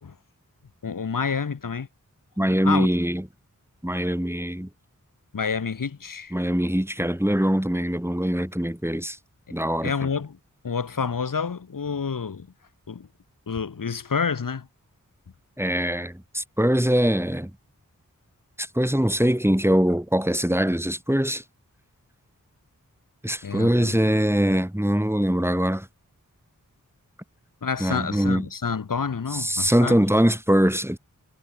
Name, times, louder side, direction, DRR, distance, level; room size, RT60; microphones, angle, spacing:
voice 1, 0.8-1.9 2.6-2.9 5.3-6.3 9.5-9.6 9.8-10.4 10.6-12.5 12.9-13.1 13.5-14.7 23.4-24.0 27.6-30.0, left 5 dB, 75° left, 1.6 m, -28 dB
voice 2, 2.4-3.2 3.8-4.7 6.3-9.2 9.5-9.9 15.6-17.5 18.6-21.4 23.2-25.9 27.8-28.5 29.3-31.0, equal, 5° right, 4.1 m, -22 dB
wide cardioid pair, 45°, 33 cm